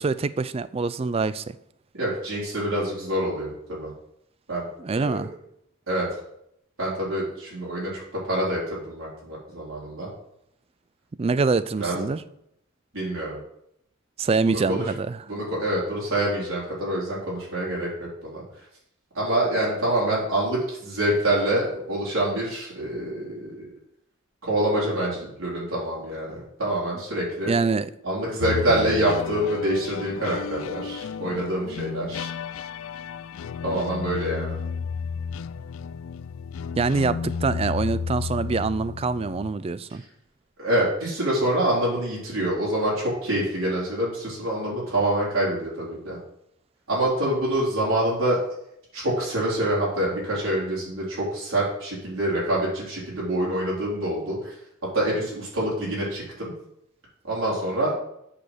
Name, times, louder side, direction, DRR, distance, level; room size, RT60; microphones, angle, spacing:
voice 1, 0.0-1.6 4.8-5.3 11.1-12.2 14.2-15.2 27.5-27.9 36.8-40.0, right 4 dB, 30° right, 0.3 m, -25 dB
voice 2, 1.9-3.9 4.5-4.7 4.9-5.2 5.9-6.1 6.8-10.1 11.8-12.0 12.9-13.4 14.4-14.8 15.3-18.4 19.1-23.7 24.4-27.5 28.0-32.3 33.6-34.6 40.6-46.2 46.9-48.4 48.9-54.5 54.9-56.5 57.3-57.9, right 1 dB, 90° right, 4.1 m, -26 dB
sound 1, 28.4-39.5, left 6 dB, 90° left, 0.4 m, -32 dB
8.6 x 5.1 x 6.2 m
head